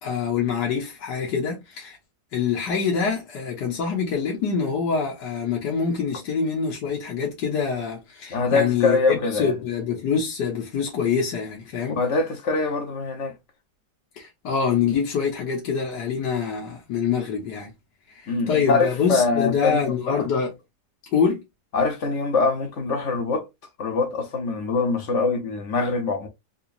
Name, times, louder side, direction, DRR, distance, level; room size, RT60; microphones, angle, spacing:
voice 1, 0.0-2.0 2.3-12.0 14.2-17.7 18.1-20.5 21.1-21.4, left 6 dB, 80° left, 1.7 m, -25 dB
voice 2, 8.3-9.6 12.0-13.3 18.3-20.3 21.7-23.5 23.8-26.3, left 4 dB, 50° left, 1.0 m, -23 dB
4.1 x 2.9 x 2.5 m
omnidirectional pair, 1.8 m